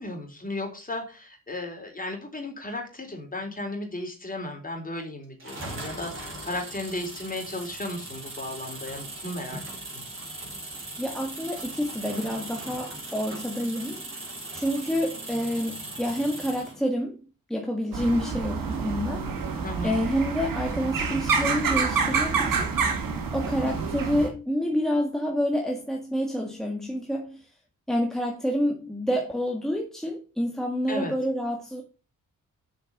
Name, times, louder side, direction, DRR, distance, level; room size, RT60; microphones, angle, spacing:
voice 1, 0.0-9.6 9.9-10.0 19.6-19.9 30.9-31.1, left 1 dB, 25° left, 4.1 m, -35 dB
sound 1, 5.4-16.8, right 2 dB, 35° right, 4.4 m, -39 dB
voice 2, 11.0-14.0 14.5-19.3 19.8-22.7 23.3-27.5 27.9-31.8, equal, ahead, 1.8 m, -28 dB
sound 2, 17.9-24.3, right 5 dB, 80° right, 2.2 m, -27 dB
7.7 x 6.4 x 5.4 m
cardioid pair, 65°, 34 cm